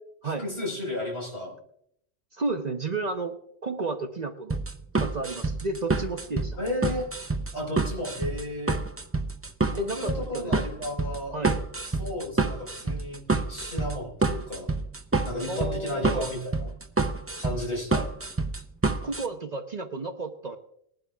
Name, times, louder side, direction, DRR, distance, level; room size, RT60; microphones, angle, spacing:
voice 1, 0.2-1.5 6.6-7.1 7.5-8.8 9.7-11.3 11.9-13.2 13.5-14.7 15.2-16.7 17.4-18.0, left 1 dB, 60° left, -2 dB, 5.1 m, -33 dB
voice 2, 2.3-3.4 3.6-4.6 5.0-6.6 9.8-10.5 11.3-11.6 15.5-16.3 19.0-20.6, right 3 dB, 45° right, 6 dB, 0.9 m, -32 dB
sound 1, 4.5-19.3, right 3 dB, 15° right, 0.5 m, -28 dB
20.0 x 11.5 x 2.3 m, 0.70 s
omnidirectional pair, 1.1 m